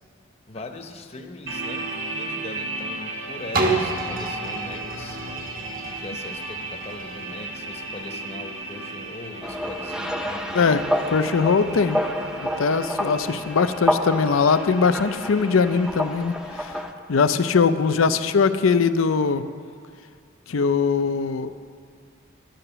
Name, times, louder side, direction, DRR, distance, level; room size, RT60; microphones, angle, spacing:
voice 1, 0.5-5.2 5.9-11.0, left 2 dB, 30° left, 5 dB, 0.8 m, -40 dB
sound 1, 1.5-16.0, right 2 dB, 75° right, 1.4 m, -36 dB
sound 2, 3.5-9.3 9.8-9.9, right 2 dB, 45° right, 1.2 m, -30 dB
sound 3, 9.4-16.9, equal, 5° right, 0.6 m, -29 dB
voice 2, 11.1-12.1 12.6-16.7 17.1-19.4 20.5-21.5, left 5 dB, 85° left, 11 dB, 0.5 m, -21 dB
11.0 x 9.0 x 6.8 m, 2.2 s
head